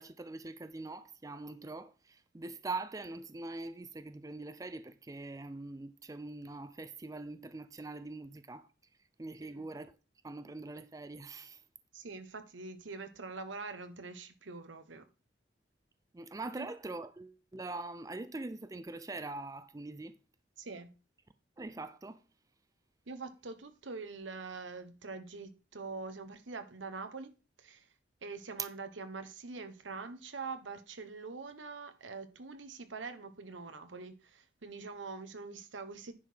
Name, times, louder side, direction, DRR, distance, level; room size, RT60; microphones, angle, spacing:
voice 1, 0.0-8.7 9.2-9.9 10.2-11.6 16.1-20.2 21.6-22.2, right 2 dB, 20° right, 0.4 m, -43 dB
voice 2, 11.9-15.1 16.6-16.7 20.6-20.9 23.1-27.3 27.6-27.9 28.2-36.1, right 4 dB, 85° right, 1.1 m, -44 dB
9.9 x 4.8 x 5.7 m
head